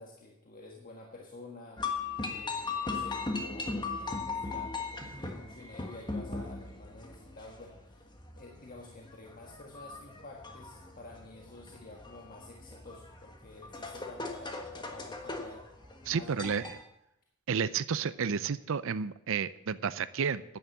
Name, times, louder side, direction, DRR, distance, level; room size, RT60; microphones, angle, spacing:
voice 1, 0.0-1.9 2.2-8.1 8.4-15.7 16.0-16.7, left 2 dB, 40° left, 0 dB, 1.5 m, -50 dB
sound 1, 1.8-16.8, left 3 dB, 20° left, 1.4 m, -39 dB
voice 2, 16.1-16.8 17.5-20.4, right 6 dB, 60° right, 15 dB, 0.5 m, -31 dB
10.5 x 9.7 x 7.1 m, 0.83 s
head